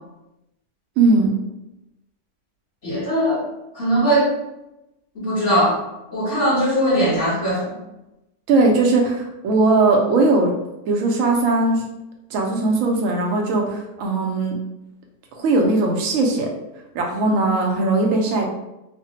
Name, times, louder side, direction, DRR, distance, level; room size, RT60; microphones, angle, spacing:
voice 1, 1.0-1.3 8.5-10.5 10.9-11.8 12.3-14.6 15.4-16.5 16.9-18.4, right 3 dB, 65° right, 1 dB, 0.9 m, -19 dB
voice 2, 2.8-3.5 3.7-4.3 5.1-5.8 6.1-7.7, equal, 50° left, -13 dB, 1.4 m, -20 dB
3.3 x 2.1 x 2.7 m, 0.92 s
omnidirectional pair, 1.7 m